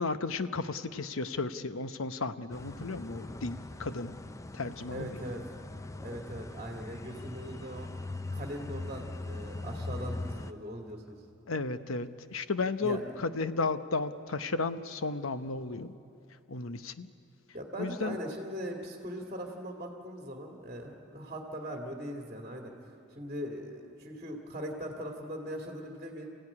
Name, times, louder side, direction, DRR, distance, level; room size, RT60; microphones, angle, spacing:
voice 1, 0.0-4.2 4.5-5.2 11.5-16.0 16.5-17.1 17.8-18.2, left 3 dB, 85° left, 11 dB, 0.9 m, -34 dB
sound 1, 2.5-10.5, left 2 dB, 15° left, 0.5 m, -41 dB
voice 2, 4.9-5.4 6.0-7.9 8.3-11.2 12.8-13.0 17.5-22.7 23.2-26.3, equal, 30° right, 1 dB, 2.2 m, -40 dB
27.5 x 16.0 x 9.8 m, 2.8 s
head